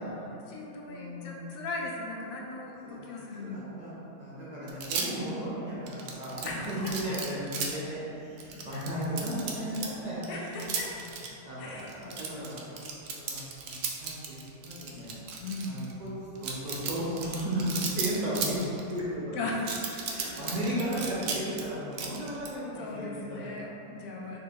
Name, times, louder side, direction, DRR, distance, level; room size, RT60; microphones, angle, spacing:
voice 1, 0.0-3.7 6.4-7.4 8.7-8.8 10.3-11.0 11.6-12.7 15.4-15.7 19.3-20.6 22.8-24.4, left 2 dB, 70° left, -2 dB, 1.0 m, -39 dB
voice 2, 0.9-1.7 2.8-3.0 3.4-10.7 11.4-12.6 13.1-15.2 15.6-16.1 16.4-19.4 20.0-23.7 24.2-24.3, equal, 35° right, -8 dB, 0.8 m, -35 dB
sound 1, 4.7-5.3 5.9-7.7 8.4-9.9 10.2-11.3 11.8-15.9 16.4-19.0 19.6-21.6 21.9-22.5, right 6 dB, 70° right, 0.9 m, -34 dB
4.0 x 2.8 x 3.5 m, 2.9 s
omnidirectional pair, 1.5 m